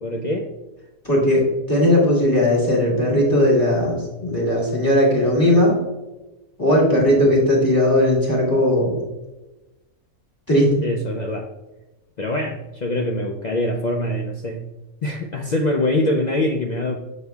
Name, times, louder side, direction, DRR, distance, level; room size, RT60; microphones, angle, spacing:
voice 1, 0.0-0.5 10.8-11.5 12.2-14.6 15.0-17.0, left 1 dB, 75° left, 2 dB, 0.4 m, -24 dB
voice 2, 1.0-5.7 6.6-9.0 10.5-10.7, left 1 dB, 15° left, -5 dB, 2.2 m, -17 dB
6.7 x 6.6 x 2.3 m, 1.0 s
omnidirectional pair, 1.4 m